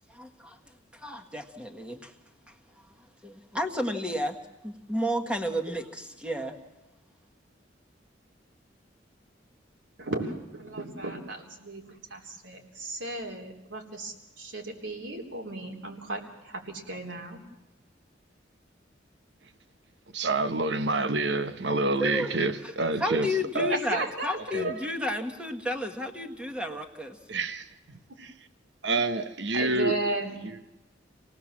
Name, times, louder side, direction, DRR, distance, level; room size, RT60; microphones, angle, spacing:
voice 1, 0.2-0.6 0.9-2.1 3.2-4.4 4.6-6.5 22.0-22.7 23.0-27.2, left 1 dB, 5° right, 1.6 m, -32 dB
voice 2, 10.0-17.4 23.7-24.9 29.5-30.3, right 2 dB, 85° right, 3.5 m, -35 dB
voice 3, 20.1-23.3 23.5-23.7 24.5-24.7 27.3-28.3 28.8-30.0, right 2 dB, 65° right, 1.1 m, -28 dB
27.0 x 18.5 x 7.4 m
head